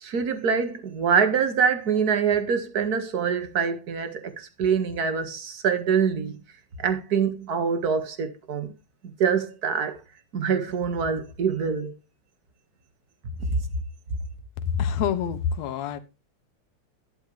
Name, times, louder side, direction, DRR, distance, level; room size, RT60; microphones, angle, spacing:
voice 1, 0.0-6.4 6.8-8.7 9.0-10.0 10.3-11.9, right 6 dB, 40° right, 1.7 m, -25 dB
voice 2, 14.7-16.0, left 7 dB, 70° left, 2.2 m, -26 dB
12.5 x 12.0 x 3.3 m
omnidirectional pair, 3.4 m